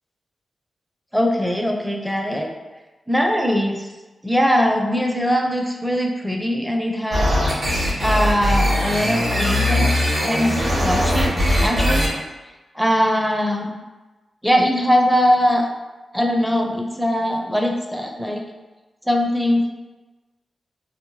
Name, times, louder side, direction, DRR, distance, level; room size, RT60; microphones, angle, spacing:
voice 1, 1.1-2.5 3.1-3.9 4.2-7.3 8.0-9.9 10.2-12.2 12.7-13.8 14.4-15.6 16.1-18.4 19.1-19.7, equal, ahead, 1 dB, 0.4 m, -21 dB
sound 1, 7.1-12.1, left 1 dB, 65° right, 1.0 m, -20 dB
2.7 x 2.1 x 2.9 m, 1.2 s
cardioid pair, 60°, 0 cm